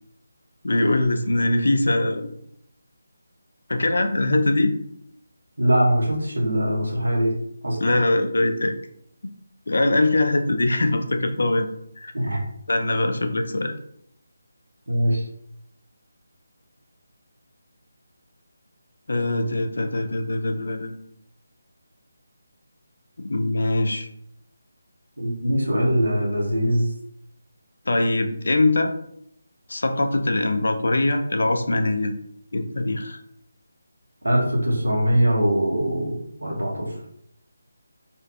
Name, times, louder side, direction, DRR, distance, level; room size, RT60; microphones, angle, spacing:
voice 1, 0.6-2.3 3.7-4.8 7.8-8.7 9.7-11.7 12.0-12.1 12.7-13.8 19.1-20.9 23.2-24.1 27.9-28.9 29.7-32.1 32.5-33.2, left 2 dB, 55° left, 6 dB, 0.3 m, -22 dB
voice 2, 5.6-7.3 7.6-7.9 12.1-12.4 14.9-15.2 25.2-26.9 34.2-36.9, equal, 70° right, -2 dB, 0.9 m, -22 dB
3.1 x 2.5 x 2.3 m, 0.71 s
figure-of-eight pair, 155°, 0 cm